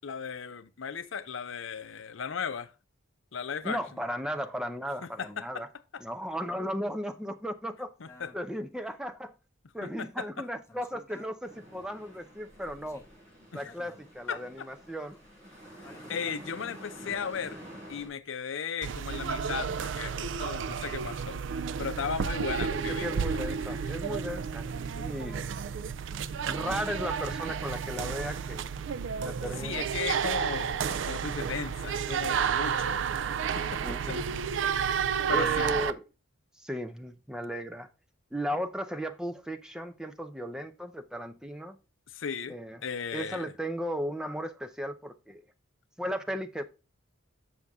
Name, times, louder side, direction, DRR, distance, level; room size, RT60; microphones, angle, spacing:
voice 1, 0.0-2.7 3.3-3.8 5.0-5.6 5.9-6.0 8.0-8.3 10.0-10.2 13.5-13.7 14.3-14.7 15.8-17.6 17.9-21.4 21.8-23.9 29.6-33.1 33.6-33.8 34.1-34.2 35.3-35.7 42.1-43.5, left 6 dB, 70° left, 0.6 m, -36 dB
voice 2, 3.6-5.7 6.0-7.9 8.3-9.3 9.7-13.0 13.5-15.2 22.9-25.5 26.4-28.7 29.2-29.9 33.8-34.3 35.3-36.0 36.6-37.9 38.3-41.8 42.5-42.8 43.1-45.4 46.0-46.6, equal, 5° right, 0.6 m, -35 dB
sound 1, 8.1-11.4 11.7-11.8 12.0-16.6 17.3-18.9 19.2-19.3 20.1-20.2 20.8-20.9 21.5-21.7, left 1 dB, 15° left, 1.0 m, -55 dB
sound 2, 11.4-18.1, equal, 35° right, 5.1 m, -48 dB
sound 3, 18.8-35.9, right 7 dB, 65° right, 0.4 m, -31 dB
7.0 x 6.4 x 3.5 m
head